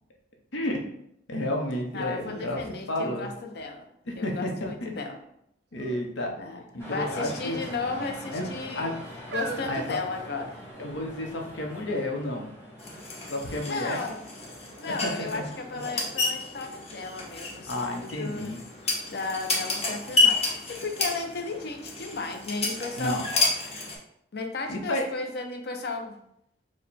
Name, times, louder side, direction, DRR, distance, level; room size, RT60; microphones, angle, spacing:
voice 1, 1.3-3.3 4.1-4.5 4.8-4.9 5.7-6.3 6.7-7.6 8.3-8.4 8.8-9.0 9.7-10.0 10.8-12.5 13.3-14.0 14.9-15.5 17.7-18.6 23.0-23.2 24.7-25.0, left 1 dB, 90° left, 1 dB, 0.8 m, -31 dB
sound 1, 1.7-1.8 2.3-3.8 4.4-4.9 5.7-6.1 6.4-6.5 7.4-8.0 8.7-10.8 11.5-11.6, right 4 dB, 60° right, 0.4 m, -41 dB
voice 2, 1.9-3.9 4.1-5.2 6.4-6.6 6.9-8.9 9.3-10.6 13.7-14.2 14.8-18.6 19.1-23.2 24.3-26.2, left 3 dB, 60° left, 4 dB, 0.6 m, -34 dB
sound 2, 6.8-15.9, equal, 15° left, 1.1 m, -44 dB
Clothesline metallic squeak, 12.8-24.0, left 3 dB, 35° left, 0.9 m, -30 dB
4.7 x 2.2 x 4.1 m, 0.76 s
head